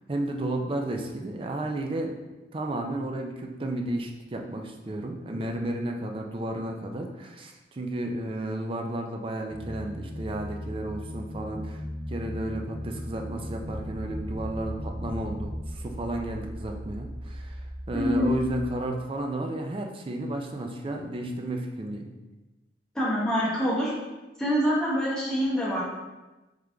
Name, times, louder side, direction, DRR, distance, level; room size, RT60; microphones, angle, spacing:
voice 1, 0.1-2.2 2.5-11.8 12.1-17.6 17.9-22.1, right 1 dB, 30° right, 3 dB, 0.4 m, -33 dB
sound 1, 9.5-15.7, equal, 65° left, 0.8 m, -37 dB
sound 2, 13.6-18.7, equal, 35° left, 1.2 m, -39 dB
voice 2, 17.9-18.4 22.9-23.9 24.4-25.8, equal, 5° left, -7 dB, 1.0 m, -25 dB
3.7 x 3.3 x 3.4 m, 1.1 s
head